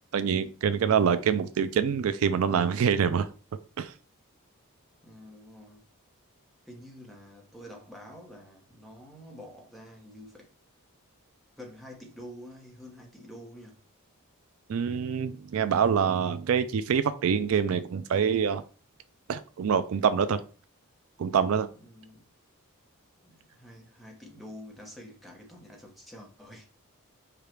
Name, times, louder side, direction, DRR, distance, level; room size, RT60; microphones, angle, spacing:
voice 1, 0.1-3.3 3.8-3.9 14.7-18.6 19.3-20.4 21.2-21.7, right 7 dB, 70° right, 0.4 m, -25 dB
voice 2, 5.0-5.8 6.7-10.5 11.6-13.8 21.8-22.2 23.2-26.7, equal, ahead, 0.9 m, -47 dB
5.0 x 2.4 x 4.4 m
head